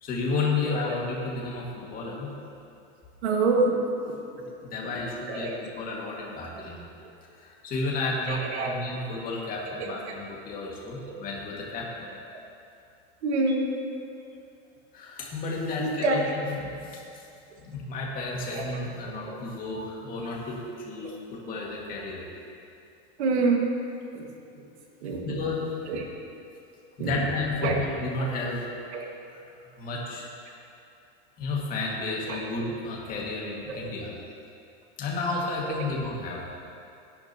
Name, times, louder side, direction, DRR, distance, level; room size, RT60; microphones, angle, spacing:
voice 1, 0.0-2.3 4.6-6.8 7.4-11.9 14.9-17.0 17.6-20.6 20.8-22.2 25.2-25.7 27.0-28.7 29.3-30.3 31.4-34.1 35.0-36.4, left 3 dB, 25° left, -3 dB, 2.1 m, -32 dB
voice 2, 3.2-3.8 4.8-4.9 5.3-5.6 8.3-8.7 13.2-13.7 15.8-16.4 18.5-18.6 19.0-19.3 23.2-23.7 24.1-24.2 25.0-25.2 25.9-26.1 27.0-27.1 27.6-27.8 28.2-28.3 28.9-29.1 32.3-32.4 33.7-33.8, right 3 dB, 85° right, 1 dB, 2.0 m, -26 dB
17.0 x 10.5 x 3.0 m, 2.6 s
supercardioid pair, 155°, 33 cm